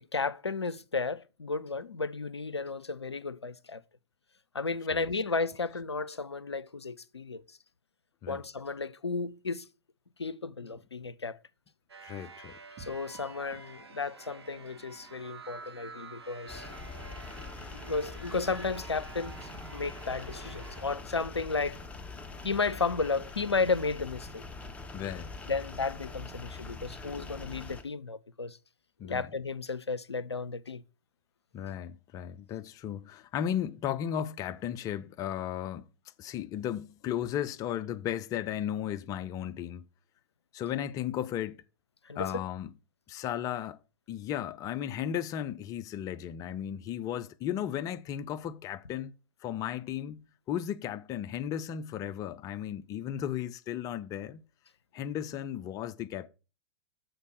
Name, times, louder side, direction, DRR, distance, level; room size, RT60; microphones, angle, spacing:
voice 1, 0.1-3.8 4.5-7.4 8.3-9.7 10.2-11.4 12.8-16.7 17.7-21.8 22.4-24.4 25.5-28.6 29.0-30.8 42.0-42.3, left 4 dB, 90° left, 0.4 m, -33 dB
sound 1, 11.9-20.8, right 4 dB, 80° right, 0.9 m, -49 dB
voice 2, 12.0-12.6 24.9-25.3 29.0-29.3 31.5-35.9 36.2-39.9 40.5-41.6 42.2-42.7 43.1-43.8 44.1-49.1 49.4-54.4 54.9-56.3, left 10 dB, 25° left, 0.4 m, -35 dB
sound 2, 12.8-23.4, right 5 dB, 35° right, 1.7 m, -61 dB
sound 3, 16.5-27.8, left 3 dB, 10° left, 0.9 m, -44 dB
6.6 x 4.1 x 6.2 m
figure-of-eight pair, 105°, 13 cm